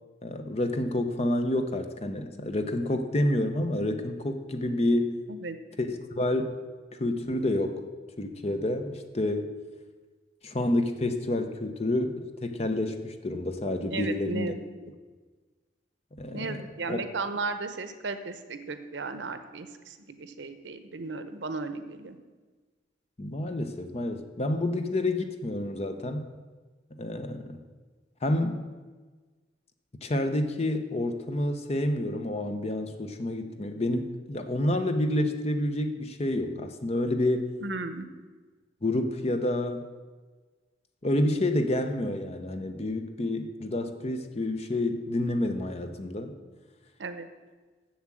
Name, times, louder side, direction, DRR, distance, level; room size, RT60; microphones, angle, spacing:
voice 1, 0.2-5.2 5.8-6.6 6.9-7.9 8.2-9.5 10.4-14.5 16.2-16.6 16.9-17.0 23.2-26.3 27.0-27.6 28.2-28.7 30.0-37.5 38.8-39.9 41.0-46.3, left 1 dB, 35° left, 7 dB, 0.8 m, -29 dB
voice 2, 13.9-14.9 16.3-22.2 37.6-38.1 47.0-47.3, right 3 dB, 85° right, 10 dB, 0.8 m, -35 dB
7.3 x 7.2 x 7.6 m, 1.4 s
head